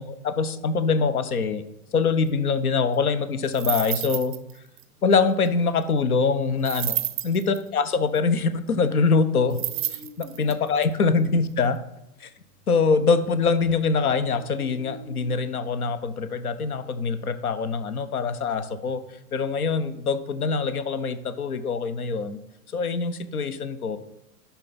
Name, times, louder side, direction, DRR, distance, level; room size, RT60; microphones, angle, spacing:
voice 1, 0.0-1.6 1.9-4.3 5.0-7.0 7.2-9.6 9.9-11.8 12.2-12.3 12.7-19.0 19.3-22.4 22.7-24.0, left 4 dB, 70° left, 12 dB, 0.8 m, -24 dB
sound 1, 1.8-3.1 4.9-6.3 6.7-6.8 7.3-7.8 8.3-20.1, right 1 dB, ahead, 1.1 m, -52 dB
sound 2, 3.5-4.5 4.8-4.9 6.6-7.6 9.5-10.8, right 14 dB, 35° right, 0.5 m, -30 dB
11.5 x 4.1 x 4.0 m, 0.86 s
figure-of-eight pair, 105°, 46 cm